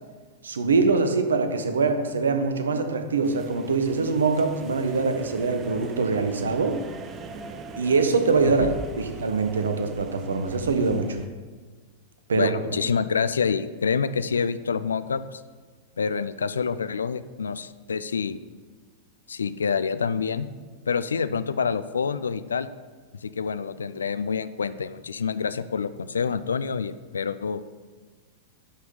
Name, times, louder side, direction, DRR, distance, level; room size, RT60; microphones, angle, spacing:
voice 1, 0.4-6.8 7.8-11.2 12.3-12.5, right 4 dB, 70° right, 7 dB, 1.0 m, -23 dB
sound 1, 3.2-11.3, right 4 dB, 25° right, 0.8 m, -41 dB
voice 2, 8.4-8.7 12.3-15.4 16.0-18.4 19.3-20.5 20.9-22.7 23.2-27.6, left 6 dB, 70° left, 14 dB, 0.4 m, -27 dB
11.0 x 5.8 x 5.5 m, 1.4 s
figure-of-eight pair, 95°, 0 cm